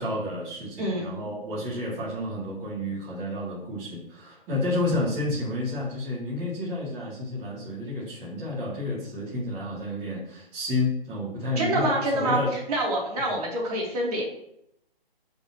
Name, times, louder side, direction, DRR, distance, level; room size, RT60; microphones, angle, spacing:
voice 1, 0.0-12.6 13.2-13.4, left 2 dB, 20° right, -8 dB, 3.0 m, -30 dB
voice 2, 0.8-1.1 11.6-12.4 12.7-14.2, right 1 dB, 40° right, -3 dB, 3.6 m, -26 dB
15.5 x 5.4 x 3.2 m, 0.78 s
figure-of-eight pair, 140°, 30 cm